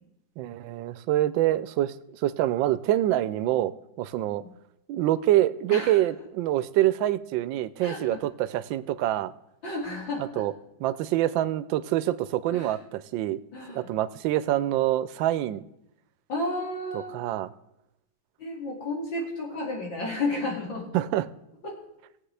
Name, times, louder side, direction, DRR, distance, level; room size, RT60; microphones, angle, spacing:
voice 1, 0.4-3.7 4.0-4.4 4.9-9.3 10.2-10.5 10.8-13.4 13.7-15.6 16.9-17.5 20.9-21.3, right 13 dB, 90° right, 15 dB, 1.3 m, -26 dB
voice 2, 7.8-8.2 9.6-10.4 12.5-12.7 13.5-13.9 16.3-17.1 18.4-20.9 21.6-21.8, left 2 dB, 90° left, -1 dB, 3.2 m, -32 dB
19.0 x 7.9 x 3.3 m, 0.85 s
omnidirectional pair, 2.0 m